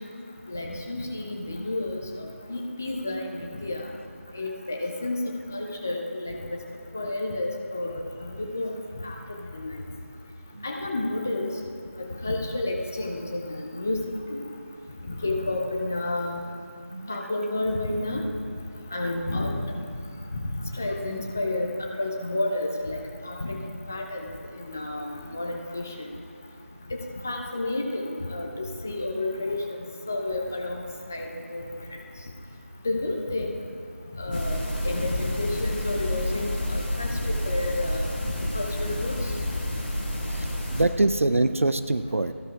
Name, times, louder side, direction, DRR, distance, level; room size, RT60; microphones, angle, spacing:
voice 1, 0.5-3.9 4.3-6.4 6.9-8.0 8.4-9.2 9.5-9.8 10.6-11.5 12.2-14.0 14.3-14.4 15.2-16.4 17.1-18.2 18.9-19.6 20.8-21.7 22.0-23.0 23.2-23.6 23.9-24.3 24.6-26.1 26.9-27.0 27.2-28.5 28.8-29.6 30.1-30.8 31.1-31.6 32.8-33.6 34.2-38.0 38.5-39.1, left 2 dB, 10° left, 2 dB, 0.3 m, -30 dB
sound 1, 34.3-40.8, left 1 dB, 40° left, 1.7 m, -29 dB
voice 2, 40.3-42.3, right 2 dB, 65° right, 12 dB, 0.4 m, -24 dB
14.0 x 12.0 x 2.3 m, 2.4 s
figure-of-eight pair, 165°, 8 cm